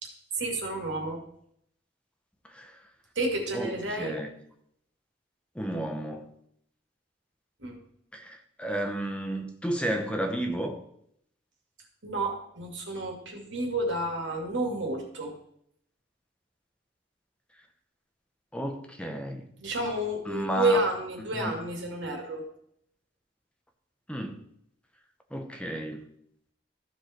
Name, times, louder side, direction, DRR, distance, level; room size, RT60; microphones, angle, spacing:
voice 1, 0.0-1.2 3.1-4.2 7.6-7.8 12.0-15.3 19.6-22.5, right 1 dB, 85° right, 2.4 m, -30 dB
voice 2, 4.0-4.3 5.5-6.3 8.1-10.8 18.5-19.5 20.3-20.8 21.3-21.6 24.1-24.4 25.3-26.1, right 1 dB, 5° left, 0.9 m, -32 dB
14.5 x 5.0 x 4.4 m
head